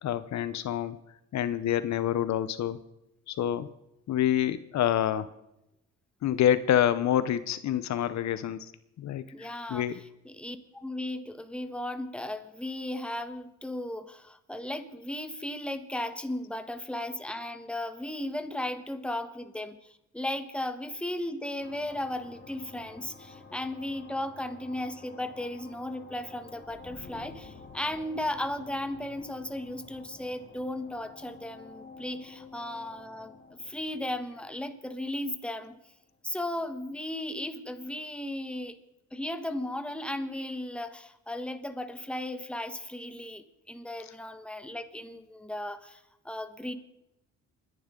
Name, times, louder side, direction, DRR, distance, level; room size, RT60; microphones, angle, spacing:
voice 1, 0.0-1.0 1.3-2.8 3.3-3.7 4.1-5.3 6.2-8.7 9.0-10.0 44.0-44.1, left 10 dB, 65° left, 14 dB, 0.8 m, -27 dB
voice 2, 9.3-19.8 20.1-35.8 36.2-38.7 39.1-46.7, left 1 dB, 5° left, 8 dB, 1.4 m, -36 dB
sound 1, 21.6-35.7, left 4 dB, 35° left, 1.7 m, -50 dB
29.0 x 11.0 x 3.8 m, 0.89 s
cardioid pair, 90°, 30 cm